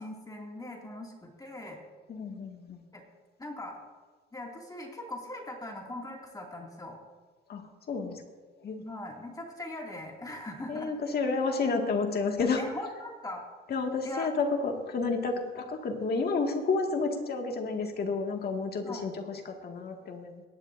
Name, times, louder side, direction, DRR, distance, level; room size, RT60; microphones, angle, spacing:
voice 1, 0.0-1.8 2.9-3.0 3.4-3.8 4.3-7.0 8.8-10.9 12.6-13.4 14.0-14.3 18.8-19.1, left 1 dB, 20° left, -1 dB, 2.4 m, -40 dB
voice 2, 2.1-2.8 7.5-8.2 8.6-8.8 10.7-12.6 13.7-20.4, left 4 dB, 55° left, 2 dB, 2.0 m, -31 dB
22.5 x 10.5 x 2.6 m, 1.4 s
cardioid pair, 90°, 20 cm